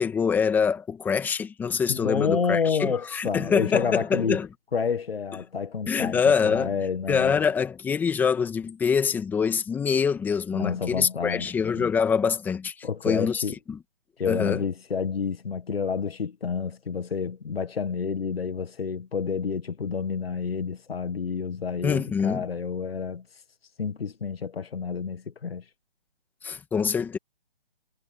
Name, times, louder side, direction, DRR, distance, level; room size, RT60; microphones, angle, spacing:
voice 1, 0.0-4.5 5.9-6.7 7.1-13.4 13.7-13.8 14.3-14.6 21.8-22.4 26.4-27.2, left 6 dB, 5° left, 1.8 m, -25 dB
voice 2, 1.9-4.4 4.7-7.4 10.5-11.9 12.8-13.6 14.2-23.4 23.8-25.7, left 6 dB, 75° left, 1.8 m, -29 dB
hypercardioid pair, 160°, 30 cm